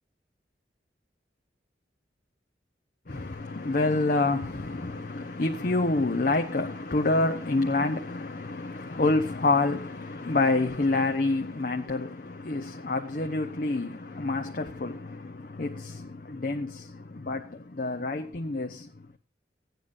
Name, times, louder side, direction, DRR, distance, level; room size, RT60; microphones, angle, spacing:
voice 1, 3.1-18.9, left 2 dB, 45° left, 0.8 m, -28 dB
17.5 x 9.3 x 2.6 m
head